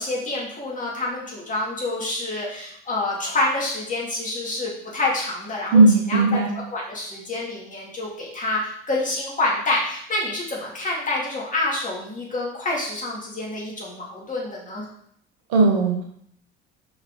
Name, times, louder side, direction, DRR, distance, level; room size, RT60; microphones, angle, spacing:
voice 1, 0.0-5.8 6.1-6.4 6.7-14.9, left 2 dB, 25° left, -4 dB, 2.8 m, -27 dB
voice 2, 5.7-6.5 15.5-16.0, right 3 dB, 60° right, 1 dB, 1.6 m, -16 dB
5.8 x 5.4 x 3.9 m, 0.68 s
figure-of-eight pair, 60°, 30 cm